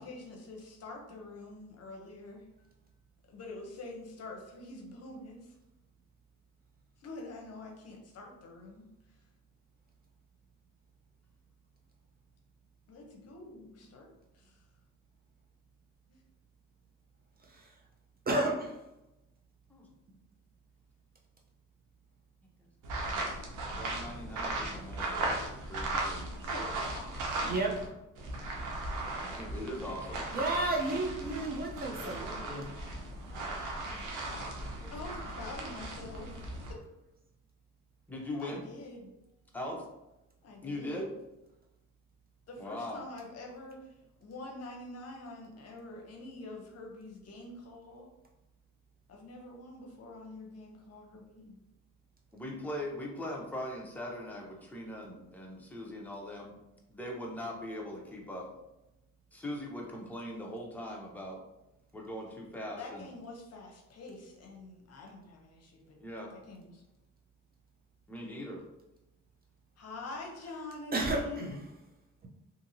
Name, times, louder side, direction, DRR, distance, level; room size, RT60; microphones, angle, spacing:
voice 1, 0.0-2.4 3.3-5.5 7.0-8.9 12.9-14.6 16.1-16.2 26.4-27.6 32.0-32.3 34.3-34.5 34.9-36.5 38.4-39.1 40.4-41.0 42.5-43.9 44.2-48.1 49.1-51.6 62.8-66.0 66.3-66.8 69.8-71.5, left 2 dB, 55° left, 1 dB, 0.7 m, -46 dB
voice 2, 17.4-17.7 18.3-18.8 27.4-27.9 30.3-32.7 70.9-71.6, right 2 dB, 30° right, -1 dB, 0.6 m, -32 dB
sound 1, 22.8-27.9 28.2-36.7, right 2 dB, 90° right, 0.7 m, -37 dB
voice 3, 23.7-26.3 29.4-30.2 33.3-34.0 34.4-34.5 34.8-35.1 38.1-38.6 39.5-39.8 40.6-41.1 42.6-43.0 52.3-56.5 56.9-58.5 59.3-61.4 61.9-63.1 66.0-66.3 68.1-68.6, left 1 dB, 5° left, -2 dB, 0.7 m, -41 dB
2.8 x 2.7 x 2.6 m, 0.93 s
cardioid pair, 90°, 30 cm